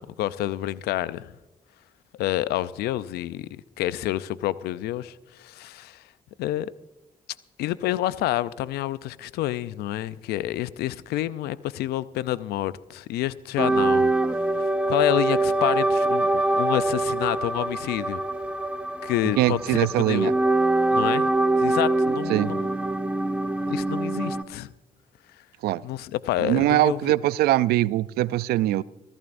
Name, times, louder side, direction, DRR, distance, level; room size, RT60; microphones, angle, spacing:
voice 1, 0.0-1.3 2.2-6.0 6.4-6.7 7.6-14.1 14.6-18.2 19.0-20.3 20.9-21.3 21.6-22.7 23.7-24.7 25.8-27.0, left 14 dB, 85° left, 0.5 m, -28 dB
sound 1, 13.6-24.4, right 2 dB, 10° right, 1.3 m, -24 dB
voice 2, 19.4-20.3 22.3-22.5 25.6-25.8 26.4-28.8, right 15 dB, 80° right, 0.5 m, -22 dB
25.5 x 14.5 x 2.6 m
hypercardioid pair, 45°, 16 cm